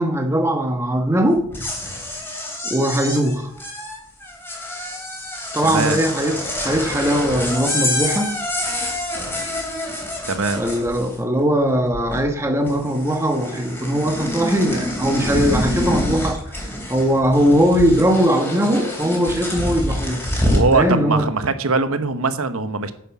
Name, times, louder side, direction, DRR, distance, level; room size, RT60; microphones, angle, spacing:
voice 1, 0.0-1.4 2.6-3.5 5.5-8.4 10.6-16.4 16.9-20.3 20.7-21.3, equal, 10° right, 1.2 m, -20 dB
sound 1, 1.4-11.4 11.7-12.4 12.7-20.7, left 1 dB, 10° left, 3.3 m, -27 dB
voice 2, 5.7-6.0 10.3-10.6 20.5-22.9, right 3 dB, 80° right, 1.0 m, -21 dB
9.4 x 8.2 x 6.0 m
head